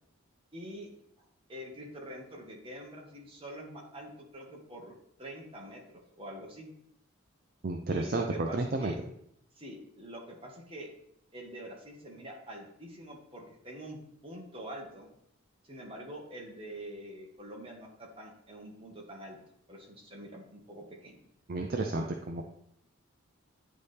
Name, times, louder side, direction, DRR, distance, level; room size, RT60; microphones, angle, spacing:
voice 1, 0.5-0.9 1.2-5.8 6.2-6.7 7.9-9.0 9.5-10.9 11.3-15.1 15.6-19.4 19.7-21.2, equal, 25° right, -1 dB, 1.4 m, -45 dB
voice 2, 7.6-8.9 21.5-22.4, right 2 dB, 45° right, 3 dB, 0.5 m, -31 dB
9.9 x 4.2 x 3.4 m, 0.73 s
head